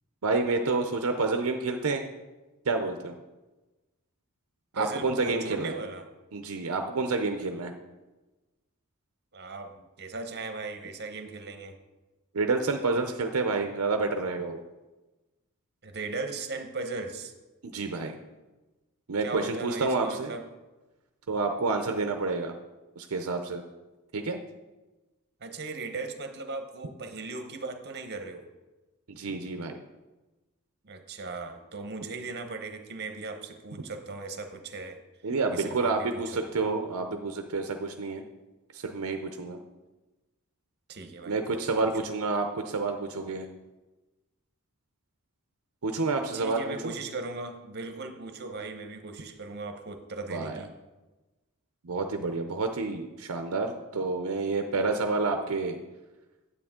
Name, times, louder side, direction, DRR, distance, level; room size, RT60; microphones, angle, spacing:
voice 1, 0.2-2.0 2.7-3.2 4.7-5.7 6.3-7.7 12.3-14.6 17.6-18.1 19.1-20.3 21.3-22.5 23.0-23.6 24.1-24.4 29.1-29.8 35.2-38.2 38.7-39.6 41.3-43.5 45.8-46.9 50.3-50.6 51.8-55.8, right 3 dB, 75° right, 5 dB, 0.6 m, -29 dB
voice 2, 4.7-6.0 9.3-11.7 15.8-17.3 19.2-20.5 25.4-28.5 30.8-35.0 35.5-36.5 40.9-41.9 46.3-50.7, right 3 dB, 50° right, 7 dB, 0.9 m, -38 dB
9.6 x 8.3 x 3.7 m, 1.1 s
head